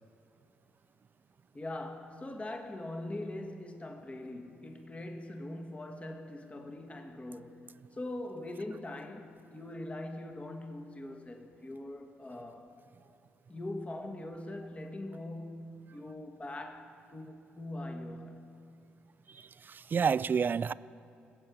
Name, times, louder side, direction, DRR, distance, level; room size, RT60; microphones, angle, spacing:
voice 1, 1.5-12.7 13.5-18.5, left 1 dB, 25° left, 1.6 m, -42 dB
voice 2, 19.3-20.7, right 6 dB, 40° right, 0.3 m, -30 dB
16.5 x 7.6 x 6.9 m
hypercardioid pair, 55°, 5 cm